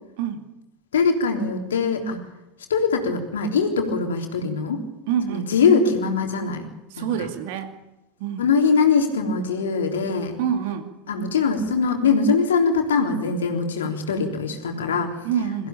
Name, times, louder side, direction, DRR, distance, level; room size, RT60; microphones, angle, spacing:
voice 1, 0.9-2.2 2.7-4.8 5.3-6.7 7.0-7.1 8.4-10.4 11.1-15.1, left 5 dB, 75° left, 3 dB, 3.5 m, -22 dB
voice 2, 5.1-5.5 6.9-7.8 8.2-8.5 10.4-10.9 15.2-15.7, right 8 dB, 60° right, 8 dB, 2.4 m, -26 dB
23.0 x 15.5 x 9.0 m, 0.96 s
figure-of-eight pair, 75°, 0 cm